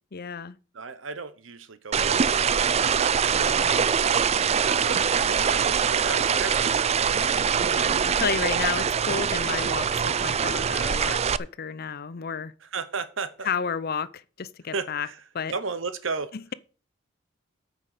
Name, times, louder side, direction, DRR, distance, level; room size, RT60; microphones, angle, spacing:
voice 1, 0.1-0.6 3.3-3.7 7.6-12.5 13.5-15.1 15.3-15.5 16.3-16.5, left 6 dB, 50° left, 0.6 m, -32 dB
voice 2, 0.7-3.8 4.7-7.3 8.7-8.9 12.6-13.5 14.7-16.3, right 4 dB, 75° right, 0.9 m, -35 dB
sound 1, 1.9-11.4, right 7 dB, 35° right, 0.4 m, -23 dB
9.0 x 6.3 x 6.6 m
head